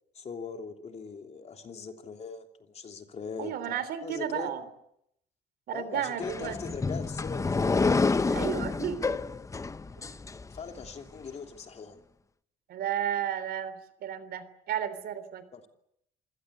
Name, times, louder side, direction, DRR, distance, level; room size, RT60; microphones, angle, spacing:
voice 1, 0.1-4.5 5.7-8.2 10.5-12.0 15.5-15.7, left 5 dB, 40° left, 5 dB, 3.2 m, -41 dB
voice 2, 3.4-4.7 5.7-6.6 8.3-9.2 12.7-15.5, right 9 dB, 65° right, 13 dB, 3.5 m, -33 dB
sound 1, 6.2-10.9, left 4 dB, 20° left, 0.9 m, -29 dB
27.0 x 17.0 x 9.8 m, 0.77 s
cardioid pair, 110°, 17 cm